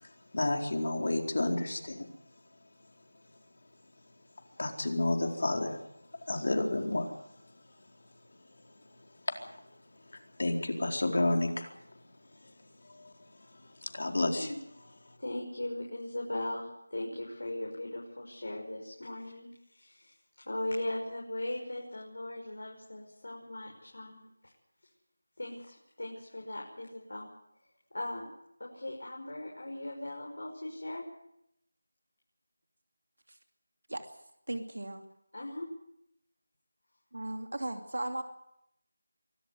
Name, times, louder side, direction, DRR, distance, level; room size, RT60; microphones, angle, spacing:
voice 1, 0.0-2.1 4.6-5.8 6.3-7.3 9.3-9.5 10.1-11.7 12.9-13.1 13.8-14.5, left 2 dB, 55° left, 3 dB, 4.4 m, -31 dB
voice 2, 15.2-20.1 20.4-24.2 25.4-27.3 27.9-28.3 28.6-31.0 35.3-35.7, left 1 dB, 75° left, -1 dB, 6.2 m, -38 dB
voice 3, 34.5-35.0 37.1-38.2, right 1 dB, 90° right, 5 dB, 2.8 m, -36 dB
24.0 x 14.0 x 9.6 m, 0.79 s
figure-of-eight pair, 175°, 0 cm